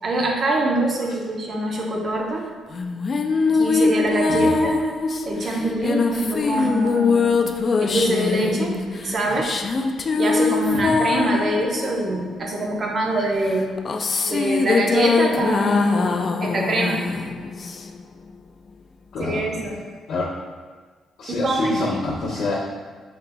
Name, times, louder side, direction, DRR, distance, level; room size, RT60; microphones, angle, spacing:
voice 1, 0.0-2.5 3.5-4.8 5.2-7.5 7.8-8.8 9.0-9.5 10.2-13.7 14.2-17.0 19.2-19.8 21.3-21.8, right 1 dB, 45° right, 0 dB, 0.8 m, -24 dB
sound 1, 2.7-12.6 13.4-18.1, left 4 dB, 45° left, 0.3 m, -23 dB
voice 2, 19.1-19.6 20.1-20.3 21.2-22.6, left 2 dB, 75° left, -11 dB, 1.0 m, -26 dB
5.3 x 3.9 x 2.2 m, 1.5 s
cardioid pair, 90°, 0 cm